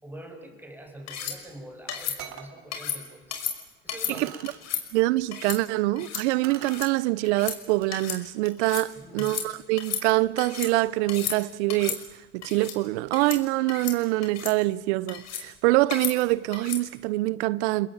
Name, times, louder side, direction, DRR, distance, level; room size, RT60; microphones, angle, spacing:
voice 1, 0.0-3.4 3.8-4.3 9.0-9.4, right 1 dB, 5° right, 6.1 m, -44 dB
sound 1, 1.1-1.4 1.9-2.2 2.7-3.0 3.3-3.5 3.9-4.1 4.5-4.8 5.3-5.6 6.0-6.2 6.5-6.9 7.2-7.6 7.9-8.2 8.4-8.9 9.2-9.5 9.8-10.7 11.1-11.4 11.7-12.0 12.4-12.8 13.1-13.4 13.7-14.0 14.2-14.5 15.1-15.4 15.9-16.1 16.5-16.8, left 8 dB, 45° left, 5.4 m, -33 dB
sound 2, 1.6-1.7 2.2-2.6 3.4-3.5 4.1-4.6 6.4-7.0 7.7-7.9 8.4-11.0, right 10 dB, 50° right, 3.8 m, -45 dB
voice 2, 4.2-4.5 4.9-12.0 12.3-17.9, right 19 dB, 65° right, 0.8 m, -25 dB
29.5 x 21.5 x 8.8 m
hypercardioid pair, 100°, 37 cm